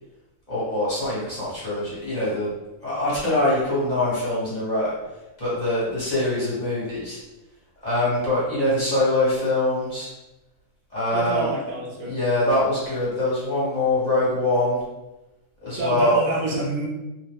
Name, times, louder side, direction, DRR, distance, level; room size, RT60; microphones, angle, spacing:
voice 1, 0.5-2.5 2.8-4.9 5.4-7.2 7.8-10.1 10.9-11.5 12.1-14.8 15.6-16.2, left 1 dB, 35° left, -9 dB, 1.1 m, -23 dB
voice 2, 11.1-12.2 15.8-16.9, right 2 dB, 75° right, -4 dB, 1.2 m, -27 dB
2.8 x 2.1 x 3.4 m, 1.0 s
omnidirectional pair, 1.4 m